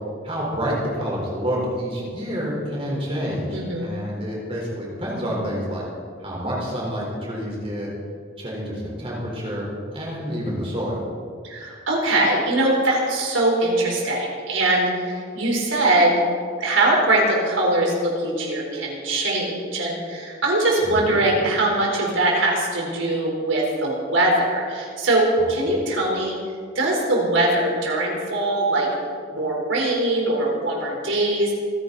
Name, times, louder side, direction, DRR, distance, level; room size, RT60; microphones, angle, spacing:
voice 1, 0.2-5.8 6.2-7.9 8.4-9.7 9.9-11.0 20.8-21.2 25.4-25.7, equal, 30° right, -4 dB, 4.2 m, -28 dB
voice 2, 3.5-3.9 11.4-16.2 16.6-26.4 26.7-28.9 29.3-31.5, right 2 dB, 75° right, -1 dB, 4.1 m, -22 dB
26.5 x 10.0 x 4.1 m, 2.2 s
head